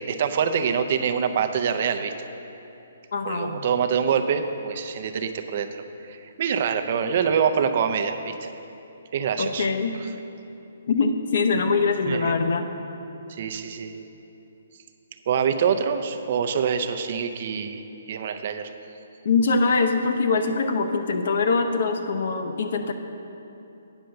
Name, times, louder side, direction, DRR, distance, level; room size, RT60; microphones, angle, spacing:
voice 1, 0.0-2.1 3.3-8.5 9.1-9.7 12.1-12.4 13.3-14.1 15.3-18.7, right 7 dB, 40° right, 8 dB, 0.5 m, -25 dB
voice 2, 3.1-3.6 9.4-10.0 10.9-12.7 19.2-22.9, left 4 dB, 60° left, 7 dB, 0.7 m, -23 dB
9.0 x 5.7 x 6.4 m, 2.9 s
hypercardioid pair, 165°, 0 cm